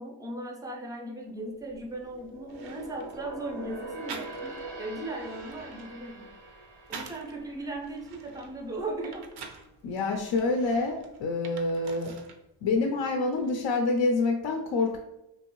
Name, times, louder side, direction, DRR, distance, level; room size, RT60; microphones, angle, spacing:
voice 1, 0.0-6.3 6.9-9.2 10.1-10.2, right 2 dB, 10° right, 1 dB, 0.5 m, -37 dB
sound 1, 1.4-8.9 9.3-9.5 10.1-10.8 11.1-11.2, right 2 dB, 90° right, 1.1 m, -44 dB
sound 2, 2.0-2.1 2.5-3.2 4.1-4.7 5.1-7.4 7.8-9.7 10.3-12.4 12.7-13.5, right 5 dB, 55° right, 0.6 m, -46 dB
voice 2, 9.8-12.1 12.6-15.0, left 3 dB, 55° left, 2 dB, 0.5 m, -27 dB
3.1 x 2.6 x 3.0 m, 0.91 s
cardioid pair, 105°, 48 cm